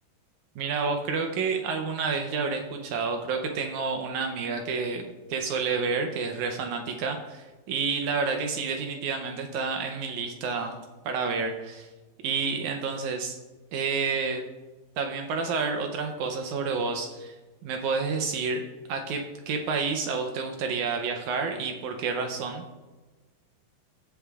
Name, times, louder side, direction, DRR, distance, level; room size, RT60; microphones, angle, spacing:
voice 1, 0.6-10.8 11.1-11.9 12.2-13.4 13.7-14.4 15.0-17.4 17.6-18.6 18.9-22.6, right 5 dB, 80° right, 4 dB, 1.7 m, -29 dB
16.0 x 6.9 x 2.4 m, 1.2 s
omnidirectional pair, 4.2 m